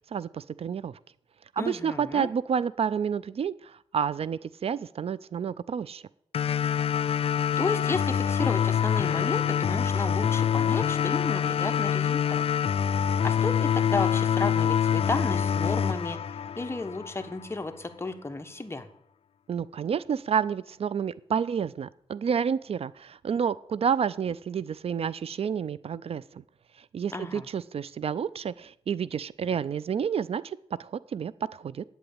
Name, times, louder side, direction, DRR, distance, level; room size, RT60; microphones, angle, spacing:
voice 1, 0.1-0.9 1.6-6.0 19.5-26.2 26.9-31.8, right 7 dB, 65° right, 18 dB, 0.4 m, -29 dB
voice 2, 1.6-2.3 7.6-12.4 13.2-16.2 16.6-18.9 27.1-27.5, left 3 dB, 25° left, 7 dB, 1.2 m, -33 dB
sound 1, 6.3-17.3, left 8 dB, 65° left, 0.4 m, -25 dB
9.0 x 8.0 x 8.6 m, 0.75 s
wide cardioid pair, 85°, 11 cm